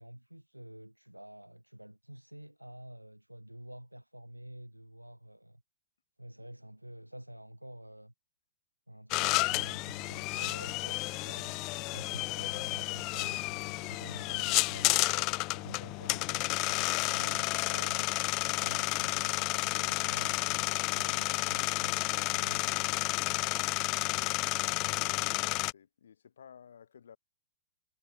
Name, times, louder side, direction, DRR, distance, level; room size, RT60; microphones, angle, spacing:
voice 1, 0.0-5.6 6.2-8.1 8.9-11.6 11.9-15.0 15.5-18.2 18.5-22.9, right 1 dB, 90° right, 4.7 m, -49 dB
sound 1, 9.1-25.7, left 25 dB, 35° left, 0.4 m, -31 dB
voice 2, 24.1-27.2, left 8 dB, 65° left, 2.2 m, -55 dB
figure-of-eight pair, 105°, 0 cm